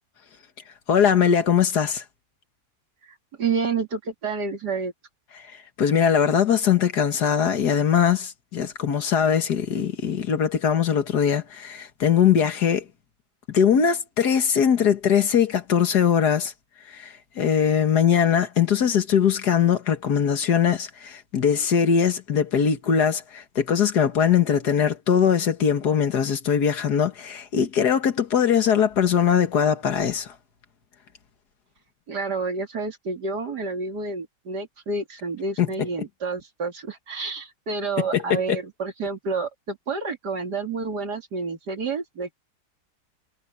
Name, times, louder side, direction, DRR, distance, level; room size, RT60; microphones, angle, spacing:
voice 1, 0.9-2.0 5.8-12.9 13.5-16.5 16.9-30.3 35.6-35.7 38.1-38.6, left 8 dB, 75° left, 2.1 m, -21 dB
voice 2, 3.0-4.9 32.1-42.4, right 4 dB, 85° right, 3.2 m, -29 dB
omnidirectional pair, 1.7 m